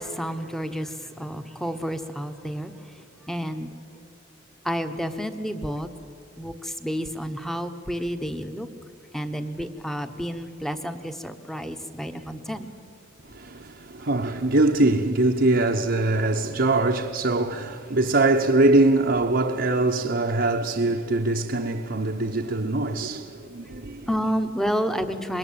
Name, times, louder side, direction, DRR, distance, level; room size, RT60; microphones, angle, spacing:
voice 1, 0.0-2.9 3.3-3.7 4.6-5.9 6.4-8.7 9.1-12.7 24.1-25.4, equal, ahead, 1.2 m, -30 dB
voice 2, 13.3-24.1, right 2 dB, 60° right, 1.0 m, -23 dB
25.0 x 21.5 x 8.8 m
head